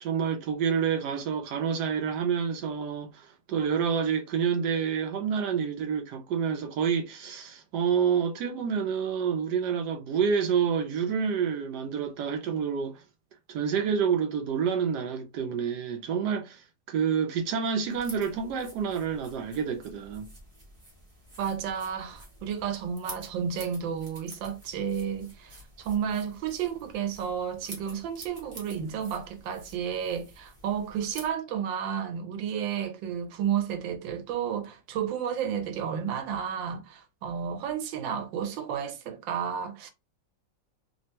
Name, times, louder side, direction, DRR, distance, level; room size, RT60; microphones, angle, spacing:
voice 1, 0.0-13.0 13.5-16.6 16.9-20.3, right 7 dB, 75° right, 1.1 m, -28 dB
sound 1, 17.9-31.3, right 1 dB, 20° right, 1.0 m, -49 dB
voice 2, 21.4-39.9, right 8 dB, 90° right, 1.3 m, -32 dB
3.4 x 2.1 x 2.8 m
omnidirectional pair, 2.0 m